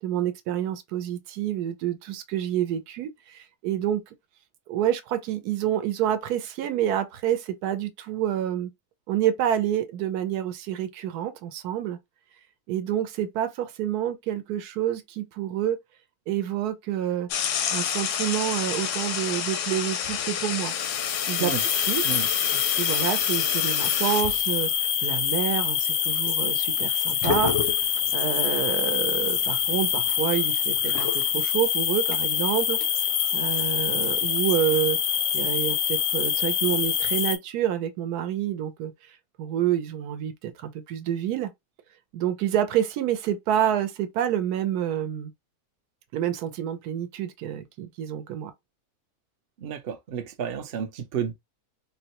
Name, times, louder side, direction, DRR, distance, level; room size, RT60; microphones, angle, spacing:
voice 1, 0.0-4.0 4.7-8.7 9.1-12.0 12.7-15.8 16.3-17.3 17.7-20.7 21.3-22.0 22.5-27.9 28.1-32.8 33.3-35.0 35.3-41.5 42.1-45.3 46.1-48.5, right 11 dB, 80° right, 1.1 m, -28 dB
sound 1, 17.3-24.7 26.8-26.9 27.2-28.1 28.7-28.8 29.3-31.3, left 8 dB, 70° left, 0.8 m, -29 dB
sound 2, 20.8-37.4, left 9 dB, 90° left, 1.2 m, -25 dB
voice 2, 49.6-51.3, right 7 dB, 60° right, 0.6 m, -31 dB
3.7 x 2.1 x 2.8 m
omnidirectional pair, 1.6 m